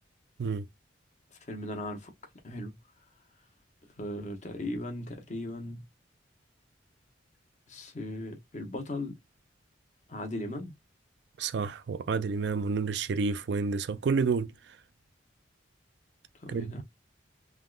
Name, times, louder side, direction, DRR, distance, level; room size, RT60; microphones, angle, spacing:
voice 1, 1.3-2.1 2.4-2.7 4.0-5.8 7.7-9.2 10.1-10.7 16.3-16.8, left 1 dB, 40° left, 0.9 m, -37 dB
voice 2, 11.4-14.5 16.5-16.8, right 5 dB, 60° right, 0.3 m, -29 dB
3.5 x 2.3 x 2.3 m
head